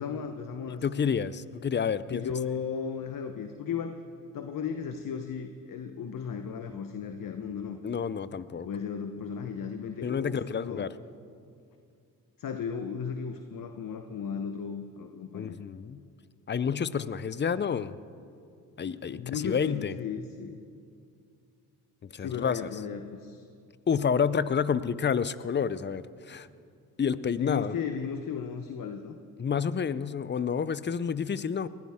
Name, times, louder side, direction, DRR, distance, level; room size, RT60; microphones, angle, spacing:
voice 1, 0.0-0.8 2.1-4.0 4.3-7.8 8.7-10.9 12.4-15.6 19.2-20.6 22.2-23.4 27.4-29.2, left 6 dB, 55° left, 7 dB, 0.9 m, -35 dB
voice 2, 0.7-2.3 7.8-8.7 10.0-10.9 15.3-16.0 16.5-17.9 18.8-19.9 22.1-22.7 23.9-26.5 27.0-27.7 29.4-31.7, left 7 dB, 30° left, 16 dB, 0.6 m, -29 dB
20.0 x 15.5 x 3.6 m, 2.4 s
cardioid pair, 70°, 39 cm